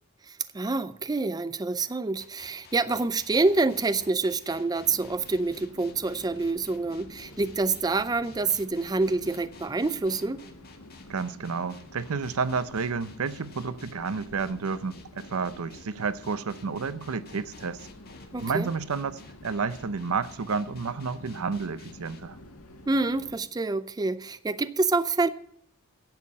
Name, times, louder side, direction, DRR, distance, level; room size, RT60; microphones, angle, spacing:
voice 1, 0.3-10.4 18.3-18.7 22.9-25.3, right 3 dB, 20° right, 0.4 m, -27 dB
sound 1, 2.2-22.2, left 4 dB, 45° left, 1.8 m, -53 dB
sound 2, 4.8-23.4, left 1 dB, 80° left, 1.5 m, -49 dB
voice 2, 11.1-17.8 18.4-22.4, right 5 dB, 75° right, 0.6 m, -31 dB
10.5 x 7.5 x 8.5 m
head